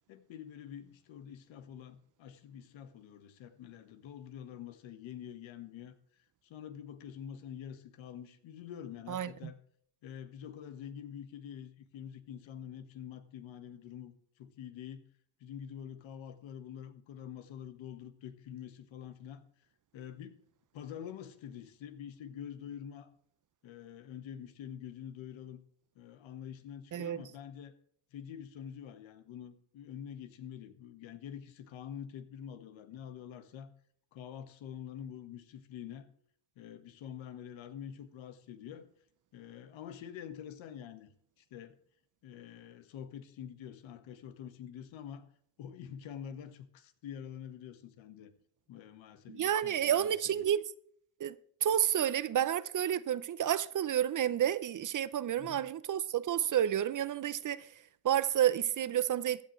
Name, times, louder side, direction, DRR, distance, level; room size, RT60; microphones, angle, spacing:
voice 1, 0.1-5.9 6.4-9.6 10.0-14.1 14.4-15.1 15.4-19.4 19.9-20.4 20.7-23.1 23.6-25.6 25.9-27.7 28.1-33.7 34.1-36.1 36.5-38.8 39.3-41.1 41.4-41.8 42.2-45.3 45.6-48.3 48.7-50.5 55.4-55.6, left 9 dB, 75° left, 1.6 m, -46 dB
voice 2, 49.3-50.6 51.2-51.3 51.6-57.7 58.0-59.4, right 10 dB, 40° right, 0.6 m, -30 dB
15.5 x 10.5 x 3.2 m
cardioid pair, 100°, 47 cm